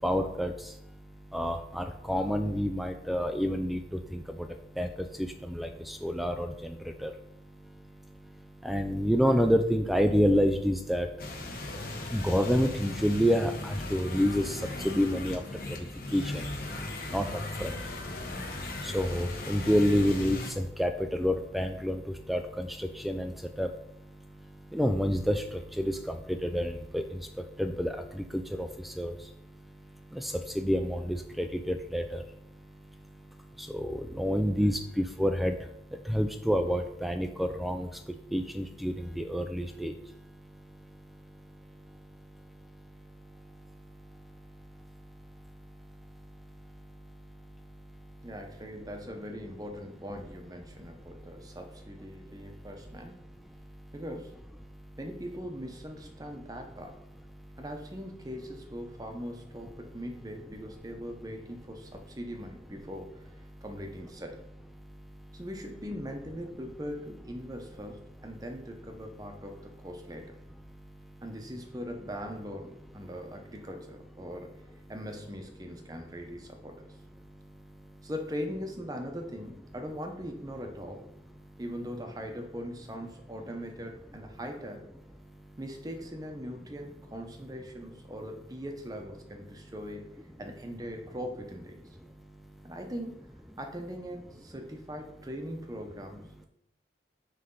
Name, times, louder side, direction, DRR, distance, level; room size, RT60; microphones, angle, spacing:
voice 1, 0.0-48.3 50.7-51.6 52.1-52.7 53.5-53.9 54.7-55.0 57.3-57.6 63.5-63.6 64.8-65.4 70.7-71.2 77.2-78.1 81.4-81.6 85.2-85.6 92.1-92.7, equal, ahead, 6 dB, 0.3 m, -31 dB
sound 1, 11.2-20.5, left 2 dB, 55° left, 1.0 m, -37 dB
voice 2, 48.2-53.3 53.9-54.4 55.0-57.0 57.6-63.3 63.6-64.4 65.3-70.3 71.2-74.5 74.9-76.7 78.0-81.1 81.6-84.9 85.6-91.8 92.6-93.3 93.6-96.5, equal, 20° right, 3 dB, 0.8 m, -40 dB
9.5 x 3.3 x 3.8 m, 0.78 s
head